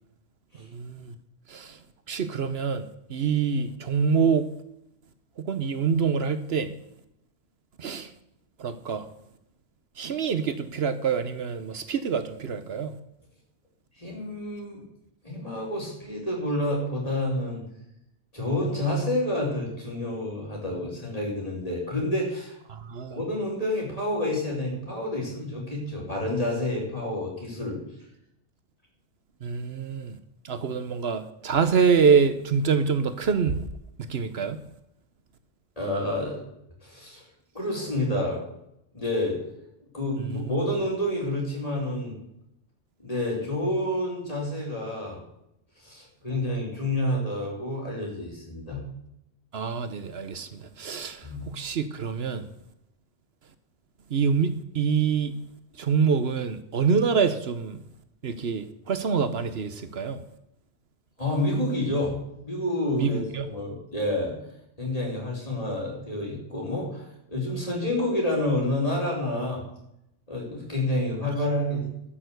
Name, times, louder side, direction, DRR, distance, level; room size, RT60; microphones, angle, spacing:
voice 1, 0.7-1.1 1.5-1.8 2.1-2.8 3.1-4.5 5.4-6.7 7.8-8.1 8.6-9.1 10.0-13.0 22.7-23.2 29.4-30.2 30.4-33.6 34.0-34.6 40.2-40.4 49.5-52.4 54.1-55.4 55.8-57.8 58.2-60.2 63.0-63.5, right 6 dB, 70° right, 1.1 m, -26 dB
voice 2, 14.0-14.8 15.2-17.6 18.3-22.5 23.1-27.8 35.8-36.4 36.8-37.2 37.5-38.4 38.9-39.4 39.9-42.1 43.0-45.2 45.8-48.8 51.2-51.5 61.2-64.4 64.8-69.6 70.3-71.8, left 1 dB, 35° left, 5.1 m, -29 dB
13.0 x 6.8 x 8.0 m
omnidirectional pair, 1.1 m